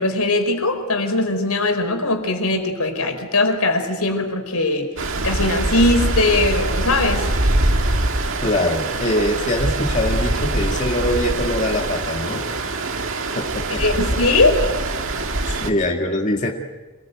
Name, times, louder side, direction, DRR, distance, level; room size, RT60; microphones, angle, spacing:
voice 1, 0.0-4.9 5.2-7.3 13.8-14.6, left 2 dB, 85° left, 5 dB, 4.8 m, -20 dB
Stream, 5.0-15.7, right 2 dB, 60° right, 2.1 m, -23 dB
voice 2, 8.4-12.4 13.4-13.8 15.6-16.5, left 1 dB, 35° left, 0 dB, 2.0 m, -23 dB
27.0 x 21.0 x 9.2 m, 1.3 s
head